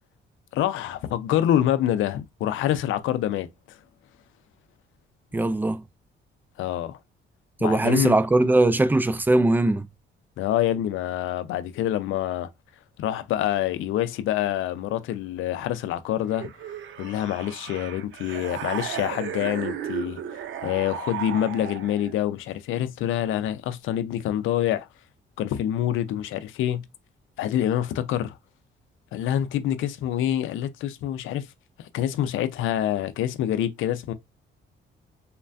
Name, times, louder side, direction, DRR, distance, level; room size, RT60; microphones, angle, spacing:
voice 1, 0.5-3.5 6.6-7.0 7.6-8.2 10.4-12.5 13.0-16.5 17.0-20.2 20.6-24.9 25.4-26.9 27.4-28.4 29.1-31.5 31.8-34.1, left 11 dB, 80° left, 0.5 m, -26 dB
voice 2, 5.3-5.8 7.6-9.9, right 2 dB, 10° right, 0.3 m, -20 dB
sound 1, 16.3-22.1, right 9 dB, 75° right, 0.5 m, -35 dB
3.2 x 2.1 x 2.5 m
cardioid pair, 90°, 20 cm